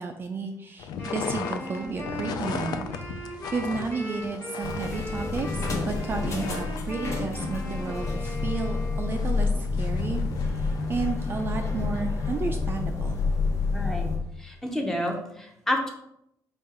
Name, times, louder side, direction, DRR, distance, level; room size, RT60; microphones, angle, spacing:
voice 1, 0.0-2.9 3.5-13.2, right 4 dB, 30° right, 4 dB, 0.3 m, -32 dB
sound 1, 0.8-11.1, left 6 dB, 75° left, 0.4 m, -38 dB
Wind instrument woodwind instrument, 1.0-9.4, equal, 30° left, 1.3 m, -39 dB
sound 2, 4.6-14.2, left 3 dB, 45° left, 0.9 m, -28 dB
voice 2, 13.7-14.1 14.4-15.9, left 1 dB, 5° left, 1 dB, 0.7 m, -29 dB
4.3 x 2.4 x 4.7 m, 0.79 s
cardioid pair, 145°, 7 cm